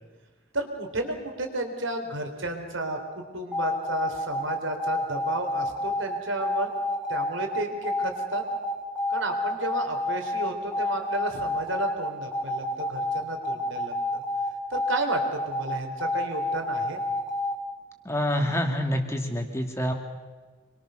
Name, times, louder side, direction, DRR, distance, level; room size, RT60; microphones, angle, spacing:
voice 1, 0.5-6.7 7.1-8.4 9.1-14.2 14.7-17.0, right 2 dB, 80° right, 5 dB, 3.8 m, -32 dB
sound 1, 3.5-17.5, left 2 dB, 5° right, 2.7 m, -28 dB
voice 2, 18.0-19.9, left 1 dB, 15° left, 3 dB, 2.3 m, -27 dB
27.0 x 23.0 x 6.5 m, 1.3 s
head